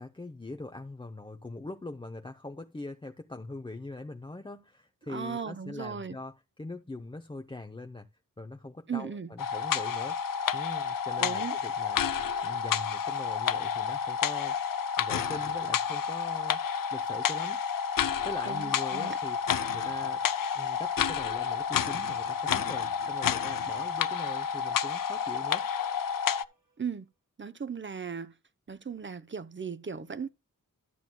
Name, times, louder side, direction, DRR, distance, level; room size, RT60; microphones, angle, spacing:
voice 1, 0.0-8.1 8.4-10.2 10.5-12.0 12.4-16.6 16.9-17.6 18.2-19.4 19.7-20.2 20.5-25.7, left 2 dB, 15° left, 0.6 m, -42 dB
voice 2, 5.1-6.2 8.9-9.3 11.2-11.5 18.4-19.2 26.8-27.1 27.4-28.3 28.7-30.3, right 6 dB, 35° right, 0.7 m, -37 dB
sound 1, 9.4-26.4, left 7 dB, 70° left, 0.6 m, -30 dB
sound 2, 20.0-26.9, equal, 90° right, 3.9 m, -59 dB
12.5 x 7.5 x 2.3 m
wide cardioid pair, 80°, 34 cm